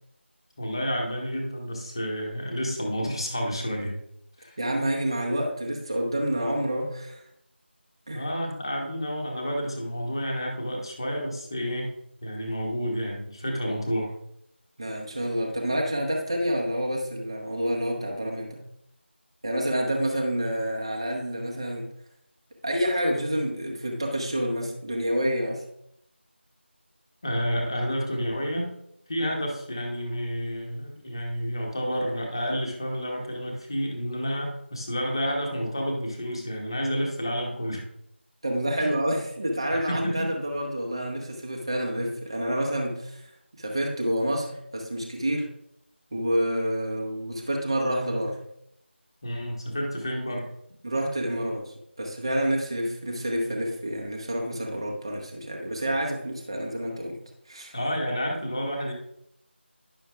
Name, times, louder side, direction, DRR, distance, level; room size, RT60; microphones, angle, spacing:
voice 1, 0.6-4.0 4.4-4.6 8.1-11.9 12.2-14.1 27.2-28.7 29.1-37.8 38.8-38.9 39.7-40.3 49.2-50.5 57.7-58.9, equal, 25° left, 0 dB, 1.1 m, -30 dB
voice 2, 4.6-7.2 8.1-8.3 14.8-18.6 19.4-21.9 22.6-25.6 29.2-29.3 38.4-43.2 43.6-45.5 46.1-48.4 50.8-57.2 57.5-57.8, equal, 25° right, -1 dB, 0.9 m, -28 dB
10.5 x 6.3 x 2.3 m, 0.76 s
figure-of-eight pair, 170°, 7 cm